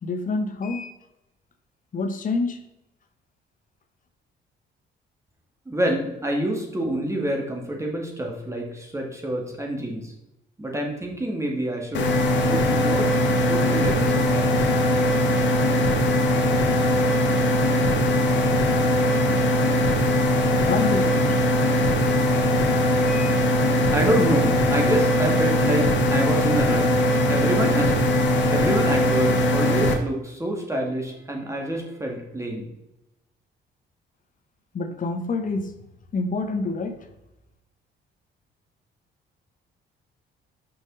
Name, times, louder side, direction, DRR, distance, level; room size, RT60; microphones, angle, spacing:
voice 1, 0.0-0.9 1.9-2.6 20.6-21.4 23.1-23.4 34.7-35.8 36.1-37.0, left 3 dB, 40° left, 1.0 m, -27 dB
voice 2, 5.7-10.1 10.6-12.1 12.4-13.1 13.5-14.7 23.9-26.9 27.3-28.0 28.5-32.7, right 1 dB, 15° right, 1.9 m, -27 dB
sound 1, 11.9-29.9, left 1 dB, 65° left, 1.3 m, -20 dB
6.0 x 5.3 x 3.9 m
cardioid pair, 90°, 20 cm